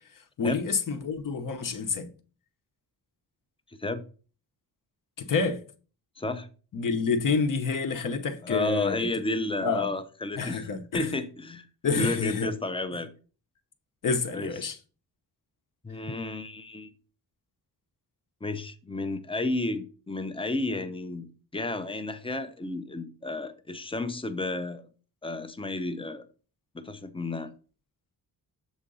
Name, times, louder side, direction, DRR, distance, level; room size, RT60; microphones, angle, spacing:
voice 1, 0.4-2.1 5.2-5.6 6.7-9.1 9.6-9.9 10.4-11.1 11.8-12.5 14.0-14.8, left 5 dB, 55° left, 0.9 m, -28 dB
voice 2, 6.2-6.5 8.4-10.7 10.9-11.7 11.9-13.1 14.3-14.7 15.8-16.9 18.4-24.9 25.2-26.3 26.7-27.5, left 2 dB, 15° left, 0.6 m, -32 dB
7.2 x 3.8 x 5.4 m
wide cardioid pair, 140°, 39 cm